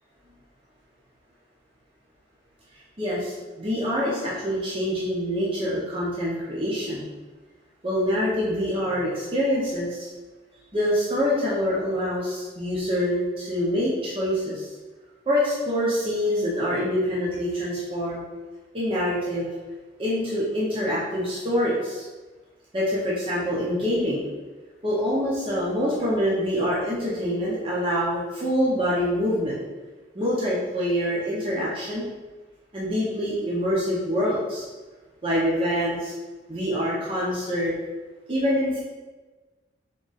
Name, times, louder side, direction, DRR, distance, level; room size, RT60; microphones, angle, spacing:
voice 1, 3.0-7.0 7.8-10.1 10.7-14.7 15.3-18.2 18.7-19.5 20.0-22.0 22.7-24.2 24.8-29.5 30.1-32.1 32.7-34.6 35.2-36.1 36.5-37.7 38.3-38.8, equal, 30° right, -7 dB, 0.8 m, -25 dB
3.7 x 2.9 x 4.0 m, 1.3 s
head